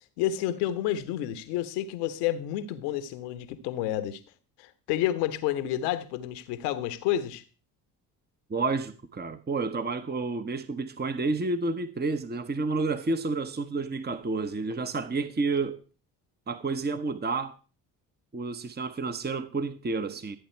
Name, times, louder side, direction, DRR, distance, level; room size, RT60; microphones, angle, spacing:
voice 1, 0.2-4.2 4.6-7.4, left 12 dB, 80° left, 1.2 m, -30 dB
voice 2, 8.5-15.8 16.5-17.5 18.3-20.4, right 3 dB, 20° right, 1.0 m, -30 dB
14.0 x 8.6 x 4.5 m
hypercardioid pair, 50°, 45 cm